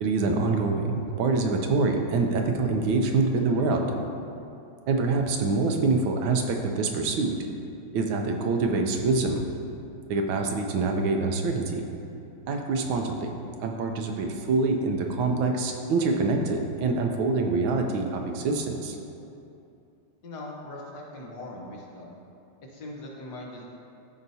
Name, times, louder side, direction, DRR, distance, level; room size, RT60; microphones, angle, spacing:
voice 1, 0.0-4.0 4.9-7.4 7.9-9.4 10.1-11.9 12.5-13.3 13.6-19.0, right 3 dB, 75° right, 3 dB, 1.4 m, -25 dB
voice 2, 20.2-22.2 22.7-23.6, left 1 dB, 60° left, -2 dB, 1.5 m, -40 dB
13.5 x 5.0 x 2.7 m, 2.7 s
omnidirectional pair, 2.2 m